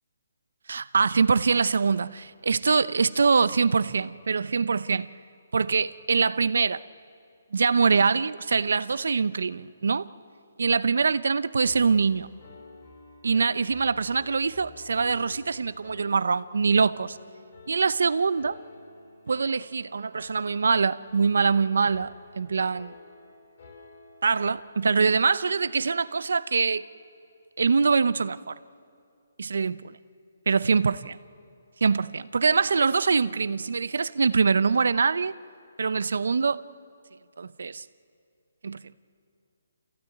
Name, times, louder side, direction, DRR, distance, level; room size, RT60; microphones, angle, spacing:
voice 1, 0.7-5.1 5.5-6.8 7.5-10.1 10.6-12.3 13.2-17.2 17.7-18.6 19.3-22.9 24.2-26.8 27.6-28.6 29.4-30.0 30.5-31.2 31.8-35.3 35.8-36.6 37.4-37.8 38.6-38.8, right 5 dB, 75° right, 0.7 m, -24 dB
Piano, 11.6-25.3, left 3 dB, 40° left, 4.2 m, -50 dB
27.5 x 15.5 x 9.2 m
hypercardioid pair, 165°, 0 cm